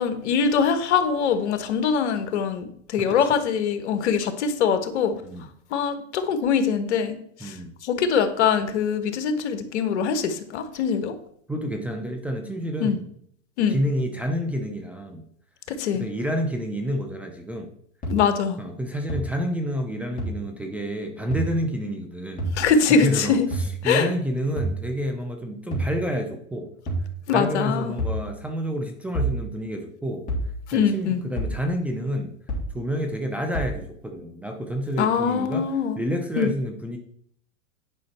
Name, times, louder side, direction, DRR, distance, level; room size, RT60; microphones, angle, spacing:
voice 1, 0.0-5.1 5.7-7.6 7.8-11.1 12.8-13.0 13.6-13.8 15.7-16.1 18.1-18.6 22.5-23.4 23.8-24.1 27.3-27.9 30.7-31.2 35.0-36.0 36.4-36.5, left 6 dB, 65° left, 9 dB, 1.4 m, -23 dB
voice 2, 7.4-7.7 11.5-13.1 13.7-15.2 15.9-17.7 18.6-22.5 22.9-26.7 27.3-30.2 30.7-32.3 32.7-35.7 36.0-37.0, equal, 5° right, 2 dB, 0.6 m, -29 dB
sound 1, 18.0-18.1 19.1-19.2 20.2-20.3 21.3-21.5 22.4-22.6 23.5-23.7 24.6-24.8 25.7-25.9 26.9-27.1 28.0-28.2 29.1-29.4 30.3-30.5 31.4-31.6 32.5-32.7 33.5-33.8, right 1 dB, 20° left, 3.3 m, -27 dB
9.8 x 5.5 x 4.3 m, 0.67 s
hypercardioid pair, 135°, 38 cm